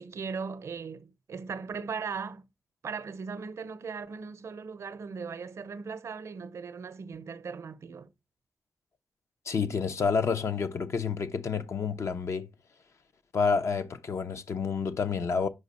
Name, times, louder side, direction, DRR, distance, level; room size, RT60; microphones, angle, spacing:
voice 1, 0.0-2.4 2.8-8.1, right 5 dB, 75° right, 0.5 m, -38 dB
voice 2, 9.5-12.5 13.3-15.5, left 5 dB, 70° left, 0.6 m, -29 dB
5.1 x 4.8 x 4.1 m
cardioid pair, 65°, 5 cm